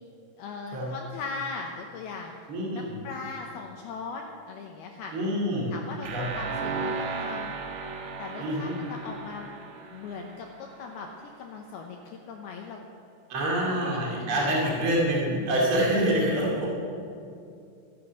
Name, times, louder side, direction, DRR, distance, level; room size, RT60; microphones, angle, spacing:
voice 1, 0.4-2.3 2.7-5.1 5.7-7.6 8.2-9.5 9.9-11.1 11.4-12.9 13.6-14.8, left 4 dB, 90° left, 1 dB, 2.2 m, -39 dB
voice 2, 2.5-3.0 5.1-5.7 6.1-6.2 8.4-8.7 13.3-16.7, right 1 dB, 40° right, -4 dB, 2.2 m, -26 dB
sound 1, 6.0-10.9, right 4 dB, 65° right, 2.5 m, -35 dB
14.5 x 11.0 x 7.4 m, 2.5 s
omnidirectional pair, 5.7 m